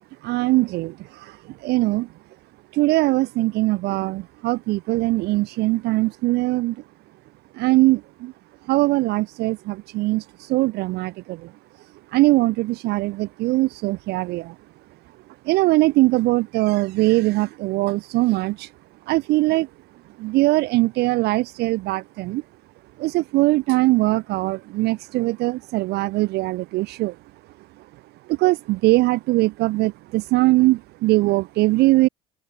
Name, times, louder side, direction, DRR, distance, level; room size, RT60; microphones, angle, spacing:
voice 1, 0.2-1.4 1.6-2.1 2.7-6.7 7.6-8.3 8.7-11.4 12.1-14.5 15.5-18.7 19.1-19.7 20.2-22.4 23.0-27.1 28.3-32.1, right 20 dB, 55° right, 0.5 m, -21 dB
hypercardioid pair, 60°, 20 cm